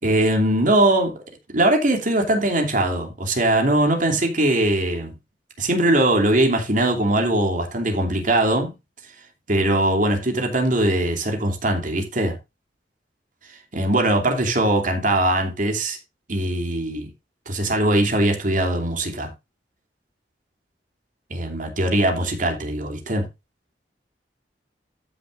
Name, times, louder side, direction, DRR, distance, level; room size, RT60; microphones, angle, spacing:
voice 1, 0.0-1.1 1.5-5.1 5.6-8.7 9.5-12.4 13.7-16.0 16.3-17.1 17.5-19.3 21.3-23.3, right 1 dB, 50° right, 3.0 m, -21 dB
14.5 x 6.8 x 2.6 m
head